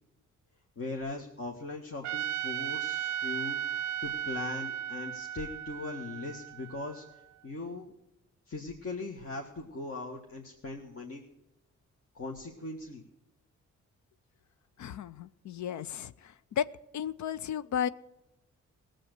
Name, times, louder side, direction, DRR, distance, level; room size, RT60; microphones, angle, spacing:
voice 1, 0.7-7.0 7.4-7.9 8.5-11.2 12.1-13.0, left 3 dB, 50° left, 1 dB, 1.7 m, -40 dB
Trumpet, 2.0-7.2, right 10 dB, 65° right, 0.5 m, -36 dB
voice 2, 14.8-16.7 16.9-17.9, left 9 dB, 70° left, 16 dB, 0.6 m, -34 dB
17.0 x 7.8 x 6.7 m, 0.92 s
cardioid pair, 75°, 30 cm